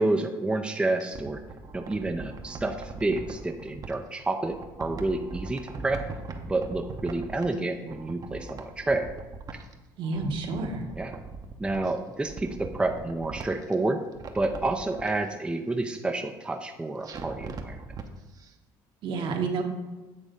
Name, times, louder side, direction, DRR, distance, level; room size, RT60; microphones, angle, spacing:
voice 1, 0.0-1.4 1.7-6.0 6.4-9.1 11.0-11.2 11.6-14.0 14.3-17.8, right 2 dB, 10° right, 4 dB, 0.5 m, -29 dB
sound 1, 0.8-3.9 4.4-7.6 7.9-9.7 10.0-11.9 12.2-13.7 14.1-15.1 17.0-18.1 18.4-18.5, right 4 dB, 40° right, 0.9 m, -40 dB
voice 2, 10.0-10.8 19.0-19.6, right 4 dB, 60° right, 2 dB, 1.2 m, -29 dB
8.5 x 3.5 x 5.2 m, 1.2 s
supercardioid pair, 90°, 10 cm